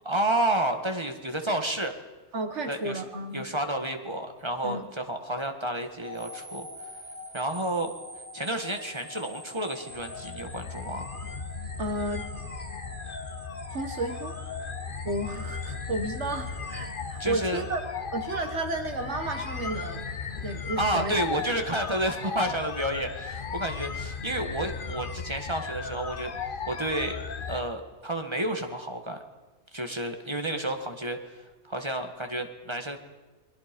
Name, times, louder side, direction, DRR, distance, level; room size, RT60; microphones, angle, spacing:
voice 1, 0.0-1.9 2.7-3.0 3.3-6.7 7.3-7.9 8.3-11.1 17.2-17.6 20.8-26.3 26.7-27.2 27.5-29.2 29.7-31.2 31.6-33.0, right 1 dB, 25° right, 5 dB, 1.7 m, -30 dB
voice 2, 2.3-3.5 4.6-4.9 11.8-12.2 13.7-14.4 15.0-17.8 18.1-20.1 20.3-21.2, right 2 dB, 80° right, 5 dB, 1.9 m, -32 dB
sound 1, 6.0-18.2, left 1 dB, 40° right, 1.7 m, -45 dB
sound 2, 9.9-27.6, left 5 dB, 50° left, 1.2 m, -36 dB
29.5 x 21.0 x 5.3 m, 1.2 s
omnidirectional pair, 1.2 m